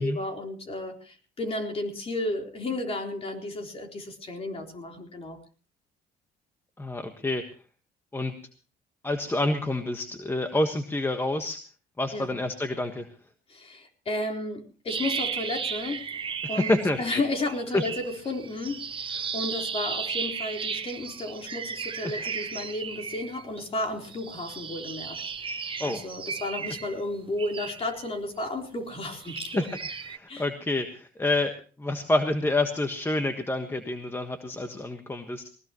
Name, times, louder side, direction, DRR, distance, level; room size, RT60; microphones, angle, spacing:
voice 1, 0.0-5.4 12.1-12.3 13.5-29.7 30.3-30.5, left 2 dB, 35° left, 3 dB, 4.0 m, -33 dB
voice 2, 6.8-7.5 8.1-8.4 9.0-11.6 12.0-13.1 16.5-17.2 17.7-17.8 19.2-19.3 22.0-22.3 25.8-26.0 30.1-35.5, left 2 dB, 15° left, 6 dB, 1.4 m, -28 dB
sound 1, 14.9-17.1 17.3-23.6 24.0-28.5 28.9-30.2, right 6 dB, 30° right, 1.2 m, -35 dB
20.0 x 19.0 x 3.0 m, 0.37 s
cardioid pair, 110°, 17 cm